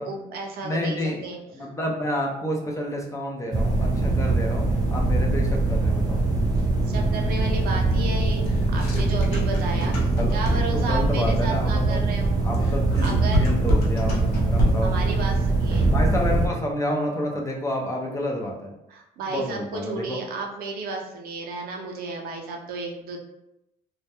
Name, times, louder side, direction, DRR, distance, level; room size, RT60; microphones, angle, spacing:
voice 1, 0.0-1.0 1.2-1.7 6.9-12.4 13.0-13.5 14.8-15.9 18.9-23.2, right 3 dB, 65° right, 1 dB, 0.5 m, -33 dB
voice 2, 0.6-1.2 1.5-4.6 4.9-6.3 9.9-12.0 12.4-14.9 15.9-18.7 19.3-20.2, left 1 dB, 20° left, 0 dB, 0.4 m, -29 dB
Room Tone Ambience Large Theatre Low Hum, 3.5-16.5, right 2 dB, 25° right, 0.7 m, -22 dB
sound 1, 8.4-10.9 12.5-15.0, left 1 dB, 85° left, 0.6 m, -27 dB
2.1 x 2.1 x 2.8 m, 0.88 s
cardioid pair, 110°, 17 cm